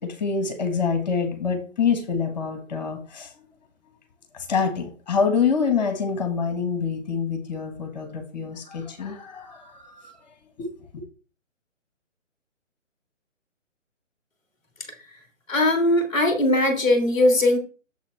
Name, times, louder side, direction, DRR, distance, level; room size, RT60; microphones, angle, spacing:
voice 1, 0.0-3.3 4.3-10.1 10.6-10.7 10.9-11.0, left 5 dB, 35° left, 1.4 m, -26 dB
voice 2, 15.5-17.6, left 1 dB, 10° left, 1.2 m, -20 dB
7.2 x 7.1 x 3.2 m
figure-of-eight pair, 140°, 39 cm